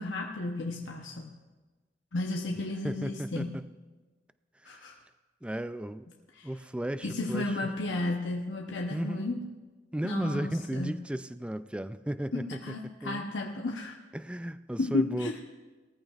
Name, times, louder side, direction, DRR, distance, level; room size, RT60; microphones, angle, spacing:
voice 1, 0.0-1.4 2.1-3.6 4.6-5.0 6.4-6.5 7.0-9.4 10.0-10.9 12.3-13.9 14.8-15.4, left 2 dB, 90° left, 1 dB, 0.9 m, -33 dB
voice 2, 2.8-3.7 4.6-4.9 5.4-6.1 6.4-7.6 8.9-9.4 9.9-13.2 14.1-15.4, right 1 dB, 5° right, 12 dB, 0.3 m, -35 dB
19.0 x 14.0 x 2.4 m, 1.3 s
head